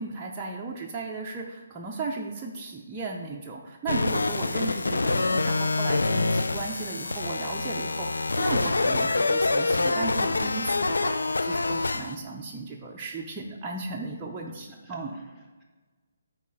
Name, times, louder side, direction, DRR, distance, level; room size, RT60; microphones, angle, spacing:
voice 1, 0.0-15.2, right 3 dB, 20° right, -3 dB, 0.6 m, -35 dB
sound 1, 3.9-12.2, left 3 dB, 80° left, 0.4 m, -26 dB
voice 2, 14.5-15.6, equal, 15° left, -3 dB, 1.5 m, -54 dB
9.3 x 4.2 x 3.8 m, 1.3 s
figure-of-eight pair, 145°, 0 cm